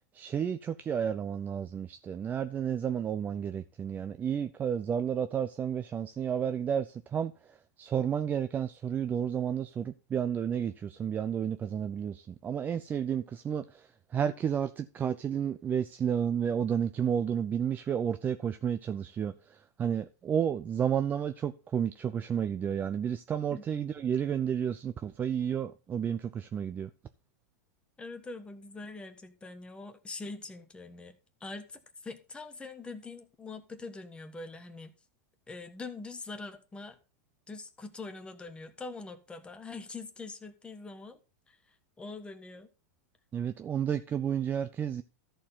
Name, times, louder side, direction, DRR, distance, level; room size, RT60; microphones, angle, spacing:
voice 1, 0.1-7.3 7.8-26.9 43.3-45.0, right 8 dB, 20° right, 0.5 m, -31 dB
voice 2, 28.0-34.9 35.5-37.0 37.5-41.2 41.5-41.6 42.0-42.7, left 3 dB, 10° left, 1.3 m, -43 dB
13.5 x 4.5 x 5.6 m
supercardioid pair, 135°, 9 cm